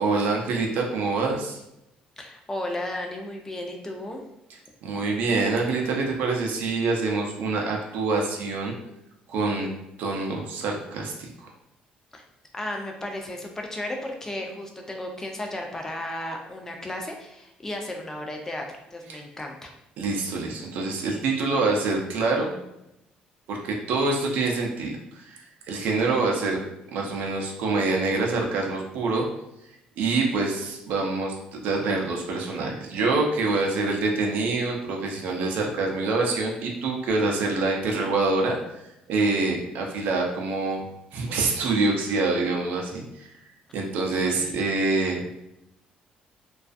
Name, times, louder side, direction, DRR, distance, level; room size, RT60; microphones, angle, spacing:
voice 1, 0.0-1.6 4.8-8.7 9.3-9.7 10.0-11.5 19.1-19.2 20.0-22.6 23.5-25.4 25.7-26.6 26.9-29.3 30.0-38.6 39.1-40.8 41.1-43.3 43.7-45.2, right 3 dB, 75° right, 0 dB, 0.5 m, -26 dB
voice 2, 2.2-4.2 12.1-12.2 12.5-19.7 44.3-44.5, left 1 dB, 15° left, 2 dB, 0.4 m, -34 dB
2.3 x 2.3 x 2.5 m, 0.86 s
cardioid pair, 130°, 3 cm